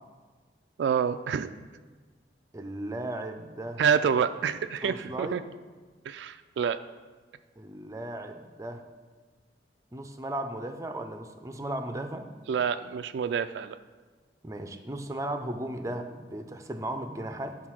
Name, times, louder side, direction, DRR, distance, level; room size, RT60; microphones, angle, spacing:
voice 1, 0.8-1.6 3.8-5.4 6.1-6.8 12.5-13.8, right 7 dB, 80° right, 11 dB, 0.3 m, -27 dB
voice 2, 2.5-3.8 4.8-5.4 7.6-8.8 9.9-12.3 14.4-17.6, right 1 dB, 20° right, 7 dB, 0.5 m, -36 dB
9.3 x 3.9 x 6.1 m, 1.4 s
head